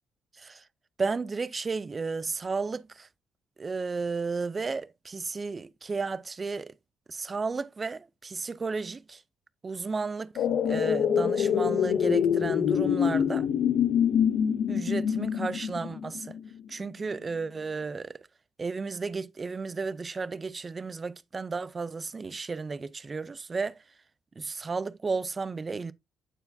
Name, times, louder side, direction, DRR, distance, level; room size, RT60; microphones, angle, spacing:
voice 1, 1.0-3.1 3.6-6.7 7.1-9.2 9.6-13.5 14.7-16.4 16.7-18.3 18.6-23.8 24.4-25.9, right 4 dB, 30° right, 0.4 m, -33 dB
sound 1, 10.4-16.5 16.8-16.9, left 8 dB, 70° left, 0.5 m, -25 dB
8.9 x 4.4 x 2.6 m
cardioid pair, 90°, 0 cm